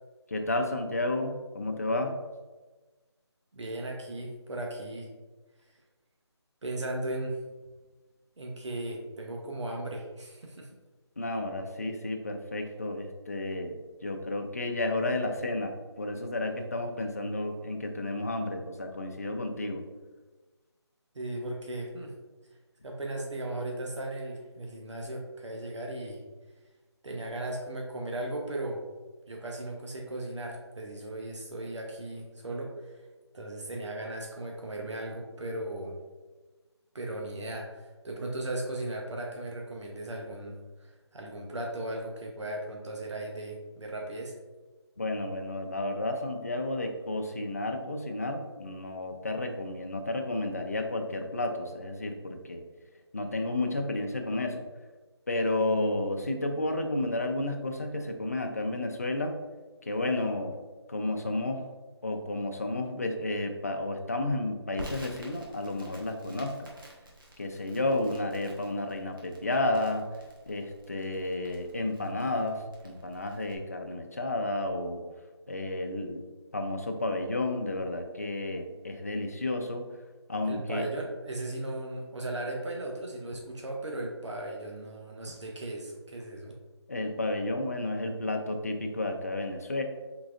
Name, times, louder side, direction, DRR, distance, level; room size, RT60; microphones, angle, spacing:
voice 1, 0.3-2.1 11.2-19.8 45.0-52.6 53.1-54.6 55.3-59.4 59.9-60.6 60.9-61.7 62.0-66.7 67.4-70.1 70.5-75.0 75.5-76.2 76.5-79.8 80.3-80.8 86.9-89.8, left 2 dB, 35° left, 4 dB, 0.3 m, -31 dB
voice 2, 3.5-5.1 6.6-7.4 8.4-10.7 21.1-22.1 22.8-26.2 27.0-28.8 29.3-33.0 33.3-36.0 36.9-44.3 80.4-86.5, right 1 dB, 90° right, 0 dB, 0.8 m, -37 dB
Crackle, 64.8-73.6, equal, 50° right, 1.0 m, -49 dB
4.1 x 3.8 x 2.4 m, 1.2 s
figure-of-eight pair, 170°, 15 cm